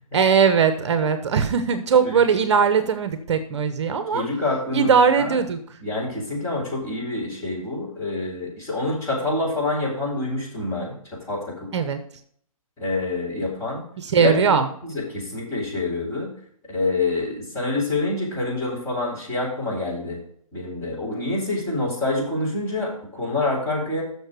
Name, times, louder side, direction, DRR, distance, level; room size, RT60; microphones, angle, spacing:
voice 1, 0.1-4.2 4.7-5.8 11.7-12.0 14.0-14.7, right 6 dB, 50° right, 10 dB, 0.9 m, -20 dB
voice 2, 4.1-5.4 5.8-11.7 12.8-13.8 14.2-14.3 14.8-16.3 16.7-20.2 20.5-24.0, left 2 dB, 15° left, -6 dB, 4.1 m, -27 dB
6.7 x 6.4 x 6.7 m, 0.63 s
hypercardioid pair, 155°, 18 cm